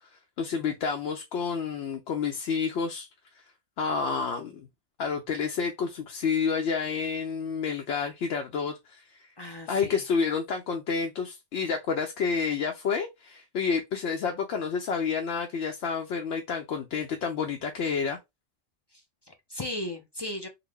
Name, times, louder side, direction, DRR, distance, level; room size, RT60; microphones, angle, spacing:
voice 1, 0.4-3.1 3.8-4.7 5.0-9.2 9.7-18.2, left 5 dB, 80° left, 0.9 m, -29 dB
voice 2, 9.4-10.0 18.9-20.5, left 1 dB, 40° left, 0.4 m, -37 dB
3.9 x 2.1 x 3.2 m
omnidirectional pair, 1.2 m